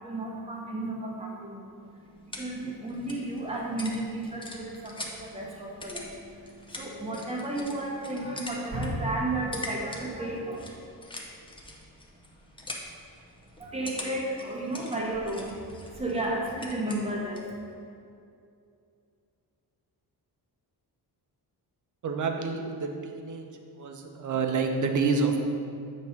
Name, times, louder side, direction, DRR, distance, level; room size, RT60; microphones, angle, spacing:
voice 1, 0.0-10.7 13.6-17.7, right 1 dB, 15° right, -2 dB, 1.0 m, -33 dB
sound 1, 1.7-17.6, left 1 dB, 15° left, 0.7 m, -44 dB
voice 2, 22.0-25.4, right 4 dB, 50° right, 4 dB, 0.7 m, -28 dB
7.7 x 3.2 x 5.7 m, 2.5 s
wide cardioid pair, 150°, 39 cm